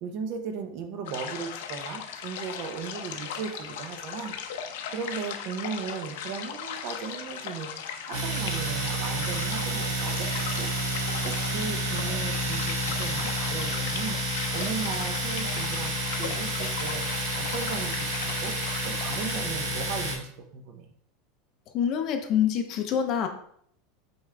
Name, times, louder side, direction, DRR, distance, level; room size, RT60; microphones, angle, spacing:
voice 1, 0.0-4.3 4.9-7.7 8.1-10.3 10.5-10.7 11.2-14.2 14.5-17.0 17.4-18.6 18.8-20.9, right 5 dB, 40° right, 6 dB, 0.7 m, -36 dB
sound 1, 1.1-19.4, left 8 dB, 70° left, 0.7 m, -37 dB
Domestic sounds home sounds, 8.1-20.1, right 1 dB, 60° right, 2.7 m, -30 dB
voice 2, 21.7-23.3, left 8 dB, 30° left, 6 dB, 0.6 m, -26 dB
8.0 x 3.6 x 3.3 m, 0.66 s
supercardioid pair, 175°, 0 cm